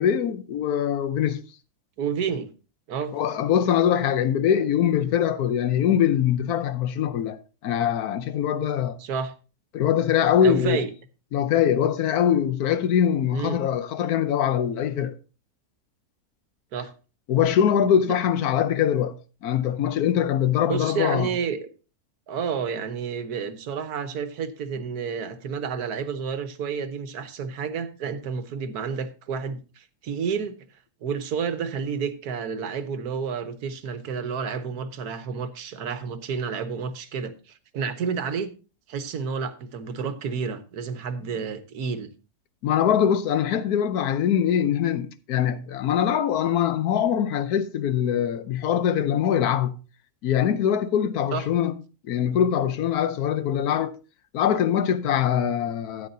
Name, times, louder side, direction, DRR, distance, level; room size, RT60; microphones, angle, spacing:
voice 1, 0.0-1.4 3.1-9.0 9.7-10.8 11.3-15.1 17.3-21.3 42.6-49.7 50.2-51.7 52.1-53.9 54.3-56.1, left 9 dB, 80° left, 1.2 m, -23 dB
voice 2, 2.0-2.5 2.9-3.1 9.0-9.3 10.4-10.9 13.3-13.6 16.7-16.9 18.0-18.2 20.7-21.6 22.3-30.5 31.0-38.5 38.9-42.1 51.3-51.5, right 6 dB, 80° right, 1.5 m, -30 dB
13.0 x 9.4 x 2.7 m
omnidirectional pair, 1.6 m